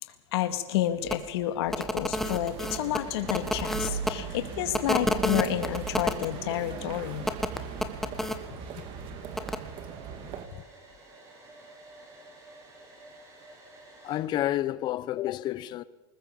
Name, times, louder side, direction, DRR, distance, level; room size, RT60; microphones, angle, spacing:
voice 1, 0.3-7.2, left 13 dB, 65° left, 2.2 m, -30 dB
sound 1, 1.1-1.2 1.7-4.1 4.7-6.3 7.2-8.4 9.3-9.6, left 1 dB, ahead, 1.3 m, -29 dB
sound 2, 2.2-10.5, right 7 dB, 35° right, 2.4 m, -39 dB
Domestic sounds home sounds, 2.4-14.2, right 2 dB, 20° right, 5.0 m, -51 dB
voice 2, 8.6-9.1 14.0-15.8, left 13 dB, 30° left, 0.9 m, -31 dB
21.0 x 20.0 x 7.1 m
supercardioid pair, 145°, 14 cm